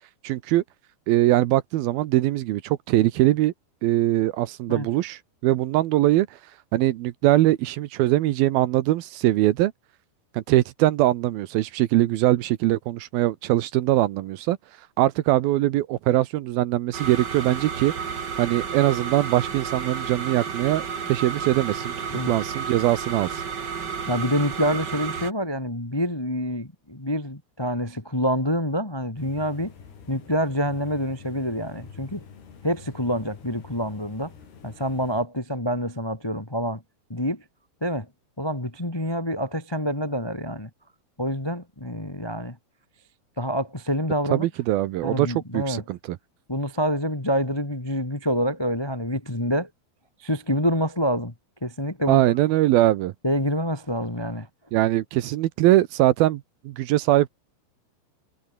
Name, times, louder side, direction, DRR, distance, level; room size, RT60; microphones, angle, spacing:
voice 1, 0.2-0.6 1.1-3.5 3.8-6.3 6.7-9.7 10.3-14.6 15.0-17.9 18.4-21.9 22.3-23.4 44.3-46.2 52.1-53.1 54.7-57.3, right 15 dB, 75° right, 2.5 m, -22 dB
sound 1, 16.9-25.3, right 6 dB, 40° right, 1.6 m, -32 dB
voice 2, 24.1-29.7 30.1-32.2 32.6-34.3 34.6-36.8 37.1-37.4 37.8-38.1 38.4-40.7 41.2-42.6 43.4-44.5 45.0-45.8 46.5-49.7 50.2-51.3 51.6-52.2 53.2-54.5, equal, 30° left, 0.4 m, -27 dB
sound 2, 29.2-35.2, left 6 dB, 70° left, 6.5 m, -46 dB
omnidirectional pair, 4.8 m